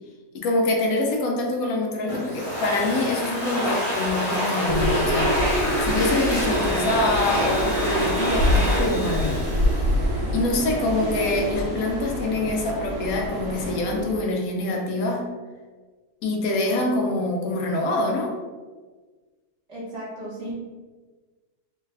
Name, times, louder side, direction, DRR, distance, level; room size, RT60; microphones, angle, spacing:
voice 1, 0.3-5.4 5.8-9.4 10.3-15.3 16.2-18.3, left 2 dB, 70° left, 1 dB, 1.0 m, -25 dB
Domestic sounds home sounds, 2.1-10.5, left 1 dB, 5° left, 1.0 m, -27 dB
sound 1, 4.6-14.2, equal, 70° right, 1.2 m, -26 dB
voice 2, 19.7-20.6, right 1 dB, 50° right, -8 dB, 1.4 m, -35 dB
3.2 x 2.3 x 3.2 m, 1.3 s
omnidirectional pair, 1.7 m